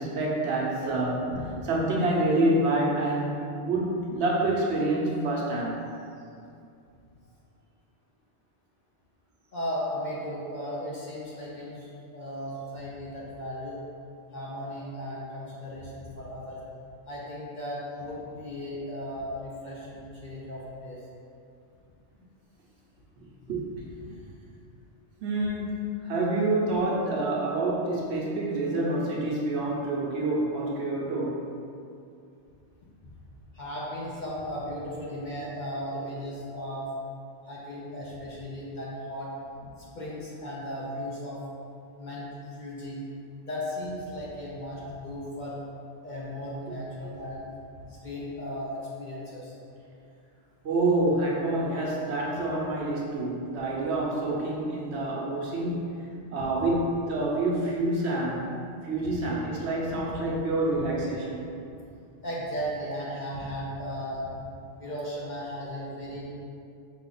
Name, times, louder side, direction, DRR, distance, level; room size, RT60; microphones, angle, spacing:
voice 1, 0.0-1.4 1.6-5.8 23.2-23.6 25.2-31.4 46.7-46.8 50.6-58.5 58.8-61.5, right 2 dB, 70° right, -3 dB, 1.0 m, -27 dB
voice 2, 9.5-13.8 14.3-16.6 17.1-21.0 33.5-36.9 37.4-39.3 39.8-41.4 42.0-43.0 43.4-45.6 46.0-47.5 47.9-49.6 59.0-59.2 60.7-60.8 62.2-64.3 64.8-66.3, equal, 50° left, -6 dB, 0.7 m, -36 dB
4.9 x 2.4 x 3.9 m, 2.5 s
omnidirectional pair, 1.2 m